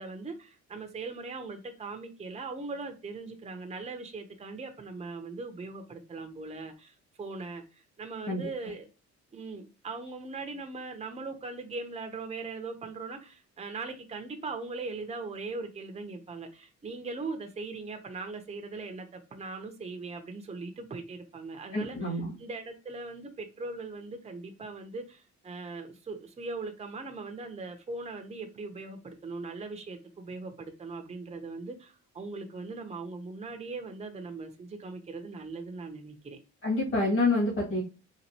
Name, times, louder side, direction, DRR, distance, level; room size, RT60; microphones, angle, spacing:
voice 1, 0.0-8.9 9.3-36.4, right 3 dB, 20° right, 0.6 m, -40 dB
voice 2, 21.7-22.3 36.6-37.8, left 2 dB, 45° left, 2.0 m, -27 dB
4.1 x 2.5 x 2.7 m
cardioid pair, 90°, 30 cm